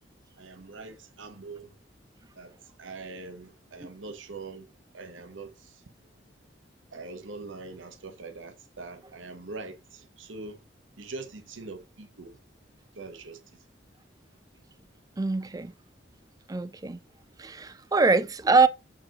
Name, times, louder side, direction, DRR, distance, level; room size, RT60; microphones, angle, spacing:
voice 1, 0.4-1.8 2.3-4.7 4.9-5.8 6.9-10.6 11.0-12.4 12.9-13.7, right 3 dB, 85° right, 1.0 m, -43 dB
voice 2, 15.2-15.7 16.5-17.0 17.4-18.7, right 3 dB, 20° right, 0.4 m, -23 dB
7.2 x 4.8 x 2.9 m
head